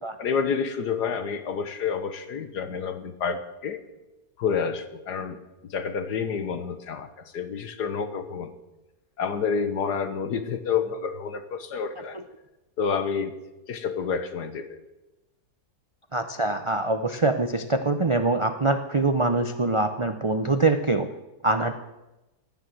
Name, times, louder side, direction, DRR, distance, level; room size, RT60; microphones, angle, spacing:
voice 1, 0.2-3.9 4.4-8.5 9.2-12.2 12.8-13.3 13.7-14.8, left 6 dB, 75° left, 10 dB, 1.7 m, -29 dB
voice 2, 16.1-21.1 21.4-21.8, right 2 dB, 40° right, 8 dB, 0.4 m, -24 dB
18.5 x 9.5 x 7.7 m, 1.0 s
omnidirectional pair, 1.8 m